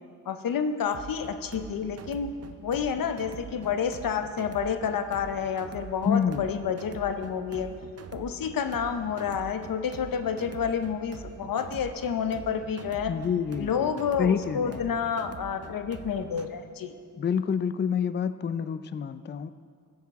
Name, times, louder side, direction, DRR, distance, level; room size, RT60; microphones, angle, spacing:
voice 1, 0.3-2.3 2.6-7.7 8.1-13.1 13.6-16.9, left 7 dB, 90° left, 9 dB, 0.7 m, -29 dB
sound 1, 0.9-16.5, right 6 dB, 50° right, 0.6 m, -44 dB
voice 2, 6.0-6.4 13.1-13.9 14.2-14.8 17.2-19.5, left 7 dB, 35° left, 13 dB, 0.4 m, -27 dB
15.0 x 9.8 x 3.6 m, 2.2 s
cardioid pair, 60°, 33 cm